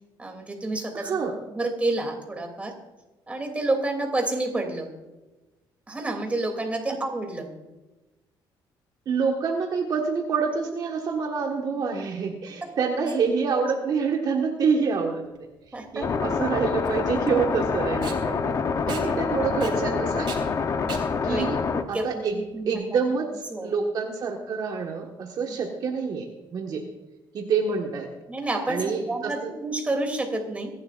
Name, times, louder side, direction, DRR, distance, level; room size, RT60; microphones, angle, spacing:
voice 1, 0.2-1.2 1.5-2.7 3.3-4.9 5.9-7.5 15.7-16.0 19.1-19.4 21.2-21.5 21.7-22.1 22.3-22.8 23.5-23.7 28.3-30.7, right 2 dB, 15° right, 3 dB, 2.9 m, -29 dB
voice 2, 0.9-1.3 9.0-15.2 15.9-18.5 18.9-20.3 21.2-21.6 21.9-23.3 23.6-26.3 26.5-26.8 27.3-28.1 28.7-29.5, right 5 dB, 50° right, 1 dB, 1.6 m, -27 dB
Packing tape duct tape, 15.3-22.7, right 7 dB, 70° right, 3.5 m, -42 dB
sound 1, 16.0-21.8, left 5 dB, 40° left, 0.9 m, -26 dB
25.5 x 11.5 x 2.6 m, 1.1 s
cardioid pair, 125°, 8 cm